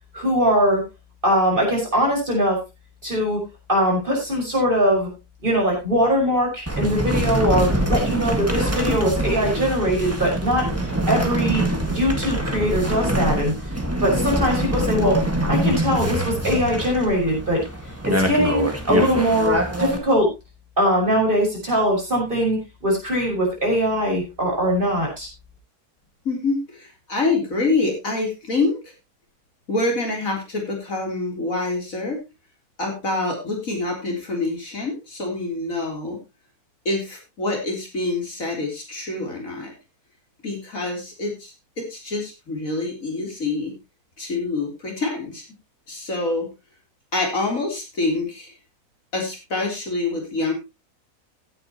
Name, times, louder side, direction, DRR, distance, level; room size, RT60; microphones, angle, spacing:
voice 1, 0.1-0.8 1.2-2.6 3.0-3.4 3.7-5.1 5.4-11.6 11.9-15.2 15.5-17.6 18.0-20.3 20.8-25.3, equal, 35° right, -1 dB, 6.0 m, -21 dB
sound 1, 6.7-20.0, right 1 dB, 10° right, 1.7 m, -24 dB
voice 2, 26.2-28.8 29.7-32.2 32.8-36.2 36.9-39.7 40.4-43.7 44.2-45.4 45.9-46.5 47.1-48.5 49.1-50.5, left 3 dB, 60° left, 1 dB, 4.0 m, -26 dB
16.5 x 9.1 x 3.0 m, 0.25 s
omnidirectional pair, 1.6 m